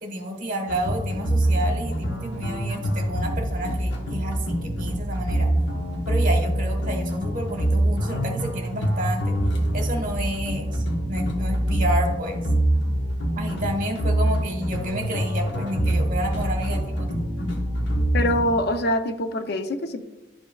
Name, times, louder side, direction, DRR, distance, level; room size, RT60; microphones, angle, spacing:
voice 1, 0.0-5.5 6.1-9.3 9.7-10.8 11.1-12.4 13.4-17.1, equal, 50° right, 4 dB, 1.3 m, -30 dB
sound 1, 0.7-18.5, right 1 dB, 75° left, 1.1 m, -25 dB
voice 2, 18.1-20.1, left 1 dB, 60° left, 8 dB, 0.6 m, -24 dB
11.0 x 5.2 x 2.3 m, 1.0 s
head